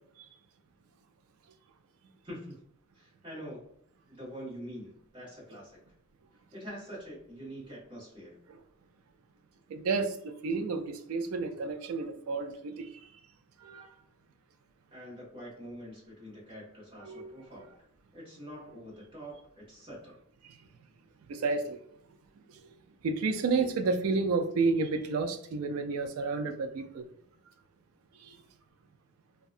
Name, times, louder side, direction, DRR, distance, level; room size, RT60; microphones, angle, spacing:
voice 1, 2.2-2.6 2.9-3.7 4.1-5.9 6.5-8.4 14.9-17.9 18.1-20.2, equal, 25° right, -6 dB, 1.2 m, -45 dB
voice 2, 9.7-13.0 13.6-13.9 17.0-17.3 20.4-20.6 21.3-21.8 22.6-22.7 23.0-27.0 28.2-28.4, right 4 dB, 80° right, 7 dB, 0.3 m, -31 dB
2.7 x 2.2 x 2.4 m, 0.67 s
head